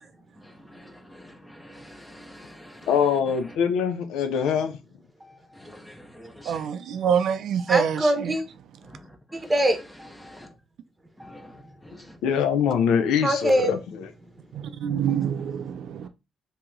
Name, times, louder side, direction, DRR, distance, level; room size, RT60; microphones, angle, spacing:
voice 1, 0.4-2.9 5.5-6.7 8.8-9.5 10.2-10.5 11.2-12.2 16.0-16.1, equal, 10° left, 0.7 m, -47 dB
voice 2, 2.9-4.8 12.2-14.1, left 7 dB, 90° left, 0.5 m, -23 dB
voice 3, 5.2-5.6 6.7-6.9 7.6-8.4 9.3-10.5 11.2-11.7 13.2-13.7 15.1-15.2, right 1 dB, 15° right, 1.0 m, -26 dB
voice 4, 6.5-8.3 14.5-16.1, right 8 dB, 70° right, 0.4 m, -26 dB
2.9 x 2.8 x 3.6 m
cardioid pair, 90°, 0 cm